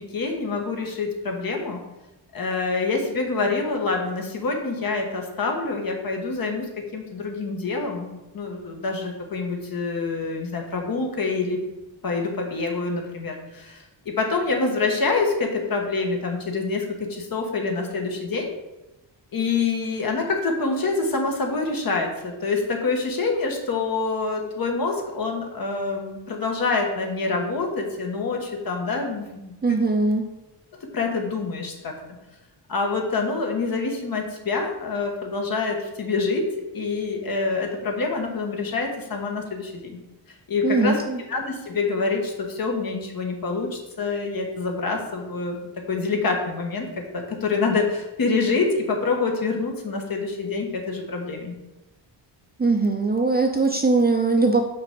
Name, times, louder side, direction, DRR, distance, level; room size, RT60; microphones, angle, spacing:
voice 1, 0.0-1.8 2.3-11.6 12.0-18.5 19.3-29.5 30.9-31.9 32.7-36.5 36.7-40.0 40.5-41.0 41.3-45.6 45.9-46.9 47.1-51.5, left 4 dB, 50° left, 2 dB, 1.5 m, -26 dB
voice 2, 29.6-30.2 40.6-41.2 52.6-54.6, right 3 dB, 20° right, 3 dB, 0.5 m, -20 dB
6.1 x 5.1 x 6.8 m, 0.99 s
wide cardioid pair, 170°, 44 cm